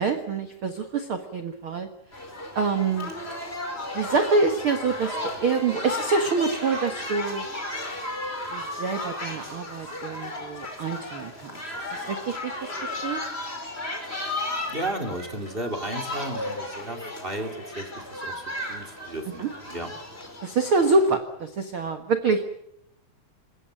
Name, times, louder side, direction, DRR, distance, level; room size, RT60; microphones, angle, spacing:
voice 1, 0.0-1.9 2.5-3.1 3.9-7.5 8.5-11.5 11.9-13.2 19.4-19.5 20.4-22.5, right 4 dB, 60° right, 7 dB, 1.4 m, -26 dB
sound 1, 2.1-21.2, left 2 dB, 15° left, 4.6 m, -34 dB
voice 2, 14.7-19.9, right 1 dB, 20° right, 4 dB, 2.0 m, -34 dB
28.0 x 16.5 x 9.1 m, 0.79 s
omnidirectional pair, 4.6 m